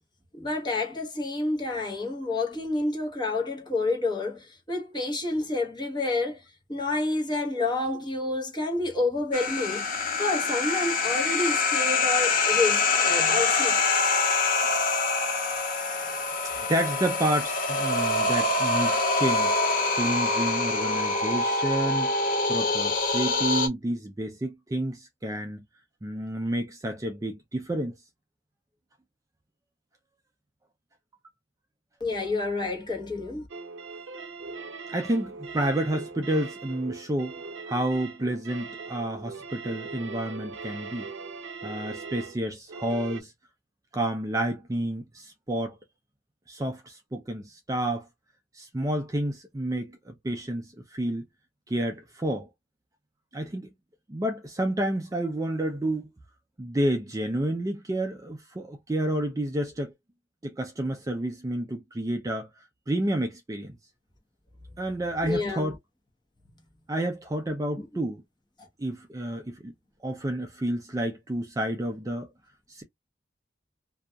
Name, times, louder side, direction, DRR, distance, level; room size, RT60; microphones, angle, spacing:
voice 1, 0.3-9.8 10.2-13.8 32.0-33.5 65.2-65.7 67.8-67.9 68.6-68.7, left 2 dB, 25° left, 0.9 m, -29 dB
sound 1, 9.3-23.7, left 3 dB, 45° left, 0.5 m, -25 dB
voice 2, 16.7-19.6 19.9-22.1 22.5-25.6 26.0-27.9 34.9-37.4 37.7-41.1 41.6-43.3 43.9-45.8 46.5-48.1 48.5-51.2 51.7-52.5 53.3-53.7 54.1-56.1 56.6-59.9 60.4-62.5 62.9-63.8 64.8-65.8 66.9-68.2 68.8-69.7 70.0-72.3 72.7-72.8, right 1 dB, 20° right, 0.4 m, -30 dB
sound 2, 33.5-43.2, right 4 dB, 80° right, 0.6 m, -40 dB
2.7 x 2.4 x 2.2 m
head